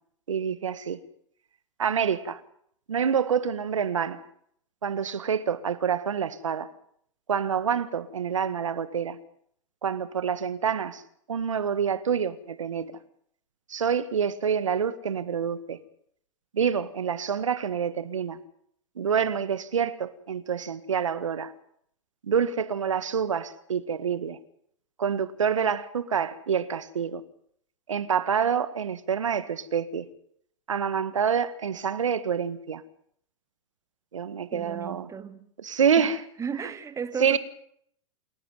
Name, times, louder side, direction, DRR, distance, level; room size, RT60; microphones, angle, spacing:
voice 1, 0.3-1.0 1.8-2.4 2.9-4.2 4.8-6.7 7.3-9.2 9.8-11.0 11.3-12.9 13.7-15.8 16.5-18.4 19.0-21.5 22.2-24.4 25.0-27.2 27.9-30.0 30.7-32.8 34.1-35.1 35.6-36.2 37.2-37.4, right 7 dB, 80° right, 1.7 m, -27 dB
voice 2, 34.5-35.5 36.0-37.4, right 6 dB, 20° right, 2.0 m, -35 dB
28.5 x 11.0 x 9.4 m
hypercardioid pair, 100°, 16 cm